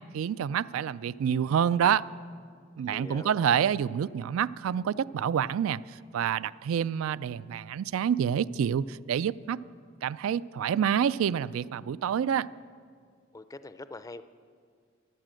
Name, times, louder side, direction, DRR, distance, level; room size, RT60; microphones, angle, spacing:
voice 1, 0.1-2.0 2.8-5.8 6.1-9.6 10.0-12.5, right 8 dB, 90° right, 19 dB, 0.3 m, -27 dB
voice 2, 2.9-3.6 13.3-14.2, left 2 dB, 15° left, 12 dB, 0.4 m, -44 dB
14.0 x 11.5 x 7.6 m, 2.1 s
head